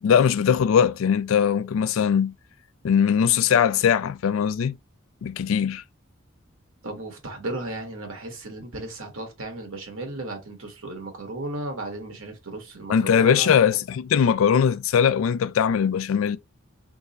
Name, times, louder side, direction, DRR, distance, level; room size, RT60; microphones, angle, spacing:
voice 1, 0.0-2.3 2.8-4.8 5.2-5.8 12.9-16.4, left 7 dB, 70° left, 0.3 m, -20 dB
voice 2, 6.8-13.6, right 2 dB, 75° right, 1.4 m, -35 dB
3.6 x 2.1 x 3.9 m
head